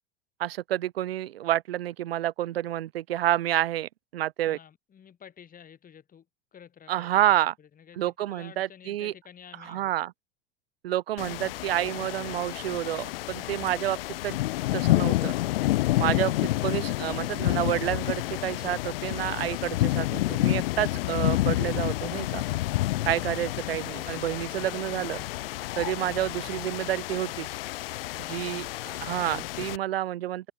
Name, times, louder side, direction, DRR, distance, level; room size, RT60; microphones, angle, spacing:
voice 1, 0.4-4.6 6.9-7.5 8.0-9.1 9.7-10.1 10.8-14.4 14.7-15.3 16.0-16.4 16.6-22.4 23.1-25.2 25.8-27.5 28.3-28.6 29.0-30.5, right 13 dB, 90° right, 0.8 m, -29 dB
voice 2, 4.5-9.9 28.2-28.7, left 8 dB, 30° left, 7.7 m, -52 dB
sound 1, 11.2-29.8, left 17 dB, 75° left, 0.8 m, -29 dB
sound 2, 21.2-23.4 23.7-26.1, left 27 dB, 55° left, 6.3 m, -48 dB
hypercardioid pair, 105°, 29 cm